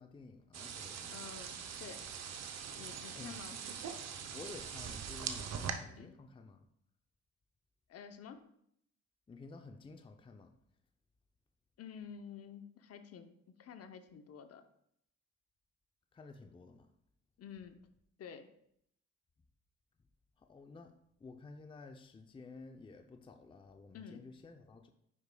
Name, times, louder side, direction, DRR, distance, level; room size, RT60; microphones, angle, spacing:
voice 1, 0.0-1.1 3.1-3.6 4.3-6.7 9.3-10.5 16.1-16.9 20.4-20.9 21.2-24.9, left 3 dB, 15° left, 0.5 m, -52 dB
sound 1, 0.5-5.7, right 7 dB, 60° right, 0.7 m, -42 dB
voice 2, 1.1-1.5 1.8-2.0 2.8-3.6 6.0-6.2 7.9-8.4 11.8-14.6 17.4-17.8 18.2-18.5 23.9-24.2, left 7 dB, 55° left, 0.7 m, -50 dB
9.6 x 4.9 x 2.2 m
cardioid pair, 90°, 30 cm